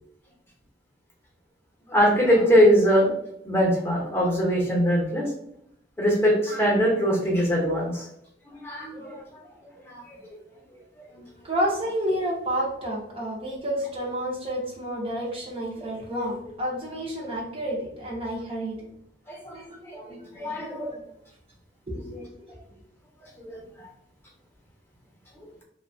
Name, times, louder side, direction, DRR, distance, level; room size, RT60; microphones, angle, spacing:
voice 1, 1.9-3.1 3.4-5.3 6.0-8.1 8.5-9.2 9.9-10.4 11.1-11.2 15.8-15.9 19.3-21.0 21.9-22.3 23.2-23.9, equal, 15° left, -3 dB, 0.8 m, -23 dB
voice 2, 11.4-18.9 19.5-19.6 21.9-22.2, equal, 30° right, -3 dB, 0.6 m, -29 dB
2.7 x 2.1 x 2.6 m, 0.74 s
head